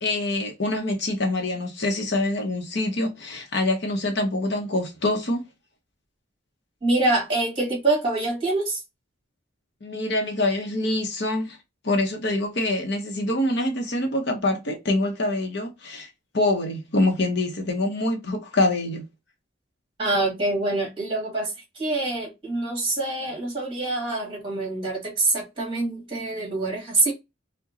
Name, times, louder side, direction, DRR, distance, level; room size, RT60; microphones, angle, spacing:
voice 1, 0.0-5.4 9.8-11.6 11.8-16.1 16.3-19.1, left 2 dB, 55° left, 0.8 m, -25 dB
voice 2, 6.8-8.8 20.0-27.1, right 2 dB, 25° right, 2.1 m, -25 dB
4.7 x 2.2 x 2.7 m
head